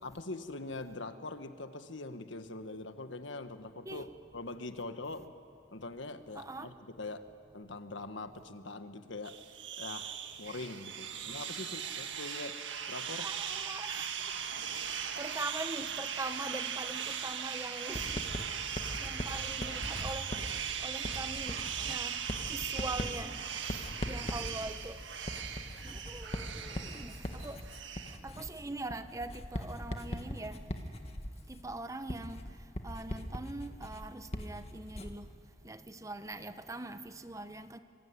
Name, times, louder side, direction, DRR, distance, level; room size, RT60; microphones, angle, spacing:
voice 1, 0.0-4.1 4.3-5.3 5.7-7.2 7.5-9.3 9.8-12.6 12.9-13.3, left 2 dB, 85° left, 1.5 m, -43 dB
voice 2, 6.3-6.7 11.2-11.3 13.2-27.7 28.1-37.8, right 2 dB, 15° right, 0.9 m, -43 dB
sound 1, 9.2-28.2, right 8 dB, 80° right, 1.6 m, -39 dB
Writing, 17.9-35.3, left 1 dB, 35° left, 1.8 m, -41 dB
26.5 x 23.0 x 9.7 m
head